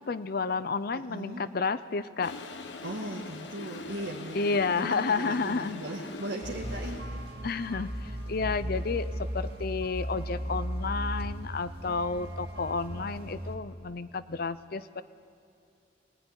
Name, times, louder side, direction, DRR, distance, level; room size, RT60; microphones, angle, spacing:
voice 1, 0.0-2.4 4.3-5.8 7.4-15.0, left 4 dB, 55° left, 13 dB, 0.7 m, -31 dB
voice 2, 0.9-1.5 2.8-7.1 7.5-7.6, right 1 dB, 85° right, -3 dB, 1.9 m, -38 dB
Toilet flush, 2.2-7.4, left 3 dB, 85° left, 1.3 m, -43 dB
sound 1, 6.4-13.6, equal, 65° right, 2.1 m, -36 dB
25.0 x 19.0 x 9.8 m, 2.5 s
head